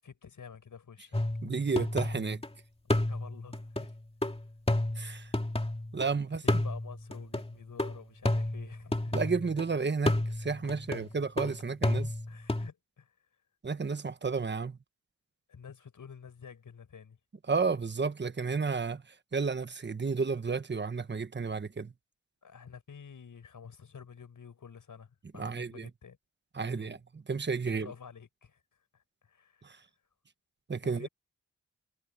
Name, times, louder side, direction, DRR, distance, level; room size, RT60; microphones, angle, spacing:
voice 1, 0.0-1.2 3.0-4.0 4.4-4.5 6.4-9.2 12.3-13.2 15.5-17.2 22.4-26.2 26.6-26.9 27.6-29.8 30.8-31.1, left 6 dB, 85° left, 6.8 m, -50 dB
sound 1, 1.1-2.5 2.9-6.1 6.5-9.6 10.1-12.7, left 1 dB, 20° left, 2.7 m, -31 dB
voice 2, 1.4-2.4 5.0-5.3 5.9-6.6 9.1-12.1 13.6-14.8 17.5-21.9 25.4-25.9 26.5-27.9 29.6-29.8 30.7-31.1, right 4 dB, 35° right, 1.2 m, -32 dB
cardioid pair, 70°, 31 cm